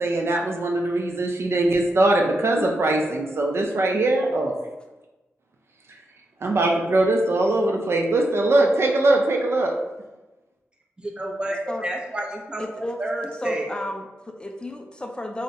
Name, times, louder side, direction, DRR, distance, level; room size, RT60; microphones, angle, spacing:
voice 1, 0.0-4.6 5.9-6.0 6.4-9.7, right 2 dB, 60° right, 2 dB, 0.4 m, -21 dB
voice 2, 11.0-13.7, right 1 dB, 20° right, -1 dB, 0.6 m, -30 dB
voice 3, 12.6-13.0 13.4-15.4, left 1 dB, 20° left, 3 dB, 0.3 m, -33 dB
3.6 x 2.1 x 2.6 m, 1.1 s
cardioid pair, 60°, 5 cm